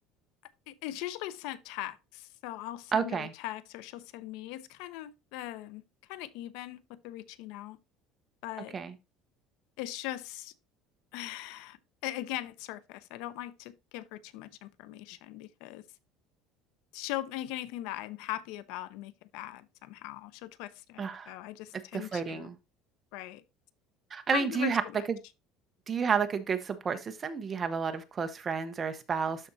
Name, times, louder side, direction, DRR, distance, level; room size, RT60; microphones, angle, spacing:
voice 1, 0.7-5.8 6.1-7.8 8.4-8.7 9.8-10.5 11.1-15.8 16.9-22.5 23.1-23.4 24.3-25.1, left 15 dB, 75° left, 0.6 m, -40 dB
voice 2, 2.9-3.3 8.7-8.9 21.0-21.3 21.9-22.6 24.1-24.8 25.1-25.2 25.9-29.5, right 6 dB, 25° right, 0.8 m, -31 dB
12.5 x 4.2 x 2.7 m
cardioid pair, 150°, 0 cm